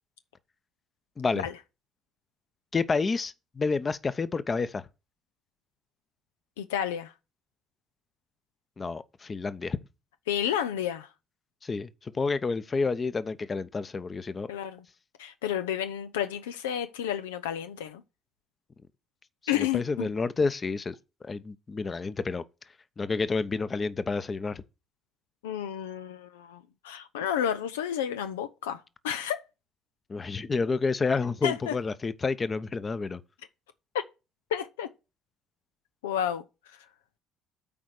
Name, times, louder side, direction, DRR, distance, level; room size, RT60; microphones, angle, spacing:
voice 1, 1.2-1.5 2.7-4.8 8.8-9.8 11.6-14.5 19.6-20.9 21.2-22.4 23.0-24.6 30.1-33.2, left 4 dB, 35° left, 0.8 m, -29 dB
voice 2, 6.6-7.1 10.3-11.1 14.5-14.8 15.2-18.0 19.5-20.1 25.4-29.4 31.4-31.8 34.5-34.9 36.0-36.4, left 10 dB, 90° left, 0.4 m, -31 dB
8.7 x 4.3 x 6.4 m
hypercardioid pair, 60°, 0 cm